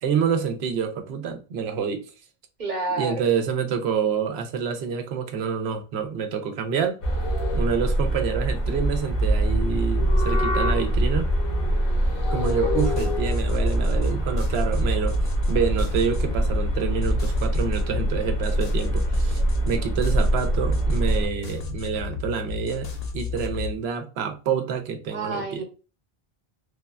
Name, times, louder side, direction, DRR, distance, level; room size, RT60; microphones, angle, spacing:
voice 1, 0.0-2.0 3.0-7.0 7.5-11.3 12.3-15.2 15.5-25.6, right 6 dB, 85° right, 0.9 m, -27 dB
voice 2, 2.6-3.2 12.7-12.9 25.1-25.6, right 3 dB, 45° right, 1.0 m, -30 dB
sound 1, 7.0-21.3, right 1 dB, 65° left, 0.9 m, -24 dB
sound 2, 12.4-23.7, left 3 dB, 50° left, 0.5 m, -33 dB
3.3 x 2.1 x 2.3 m
omnidirectional pair, 1.1 m